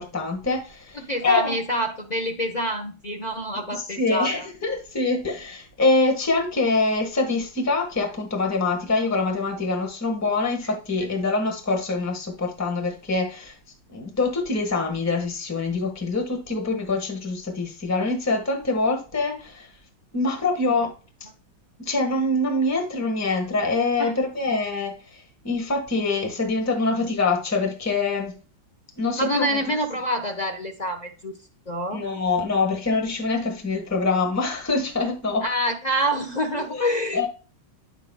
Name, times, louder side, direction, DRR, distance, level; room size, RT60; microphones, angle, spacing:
voice 1, 0.0-1.5 3.7-13.5 13.9-19.7 20.1-20.9 21.8-28.3 29.0-29.5 31.9-35.5 36.5-37.3, left 3 dB, 10° left, 2 dB, 1.2 m, -25 dB
voice 2, 0.9-4.5 10.6-10.7 24.0-24.1 29.2-31.4 31.7-32.0 35.4-37.3, equal, 40° left, 2 dB, 0.6 m, -27 dB
9.2 x 6.7 x 2.3 m, 0.35 s
omnidirectional pair, 2.3 m